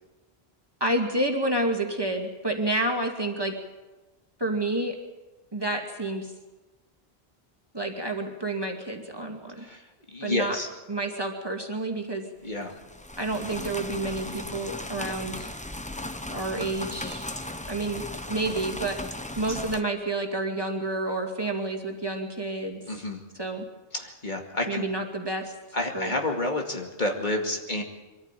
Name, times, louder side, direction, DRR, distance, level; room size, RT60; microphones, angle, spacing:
voice 1, 0.8-3.5 4.4-5.0 5.5-6.3 7.7-9.6 10.2-10.6 10.9-12.2 13.2-15.5 16.3-17.3 17.7-19.0 19.4-22.8 23.4-23.6 24.7-25.5 25.9-26.1, right 2 dB, 25° right, 2 dB, 2.4 m, -29 dB
voice 2, 10.1-10.7 12.4-12.7 22.9-23.2 23.9-24.9 25.7-27.8, left 2 dB, 50° left, 1 dB, 2.5 m, -29 dB
sound 1, 12.5-19.8, left 1 dB, 10° left, 0.9 m, -37 dB
24.0 x 14.0 x 9.1 m, 1.2 s
omnidirectional pair, 1.0 m